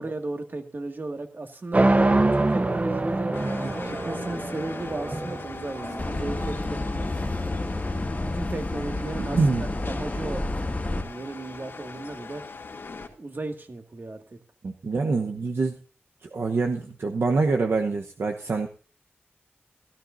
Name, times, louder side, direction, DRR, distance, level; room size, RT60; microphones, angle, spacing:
voice 1, 0.0-1.9 2.2-3.4 3.8-7.1 8.3-9.4 9.9-10.5 10.9-12.4 13.2-14.4, right 2 dB, 50° right, 5 dB, 2.0 m, -35 dB
sound 1, 1.7-7.8, right 2 dB, 35° right, 1.0 m, -25 dB
sound 2, 3.3-13.1, left 3 dB, 70° left, 2.4 m, -40 dB
sound 3, 6.0-11.0, left 2 dB, 35° left, 2.1 m, -30 dB
voice 2, 9.3-9.6 14.6-15.8 16.2-18.7, right 4 dB, 80° right, 3 dB, 1.0 m, -25 dB
16.5 x 13.5 x 2.6 m, 0.38 s
cardioid pair, 55°, 4 cm